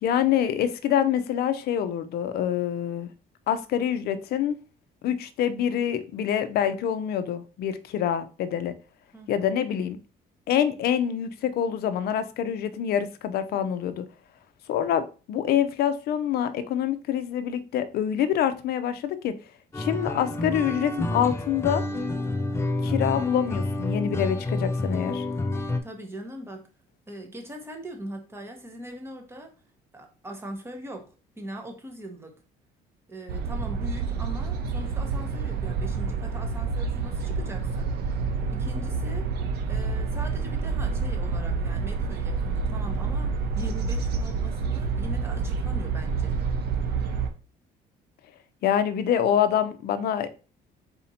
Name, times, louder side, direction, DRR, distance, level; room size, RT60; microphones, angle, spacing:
voice 1, 0.0-3.1 3.5-4.5 5.0-8.7 9.3-10.0 10.5-14.1 14.7-19.3 19.8-21.8 22.8-25.2 48.6-50.3, left 9 dB, 65° left, 0.5 m, -26 dB
sound 1, 19.7-25.8, left 2 dB, 15° left, 0.5 m, -28 dB
voice 2, 25.8-26.7 27.1-29.6 29.9-32.4 33.1-38.2 38.5-39.4 39.7-46.4, right 1 dB, 15° right, 1.1 m, -41 dB
sound 2, 33.3-47.3, right 4 dB, 75° right, 0.7 m, -28 dB
4.2 x 2.7 x 4.2 m
cardioid pair, 110°, 17 cm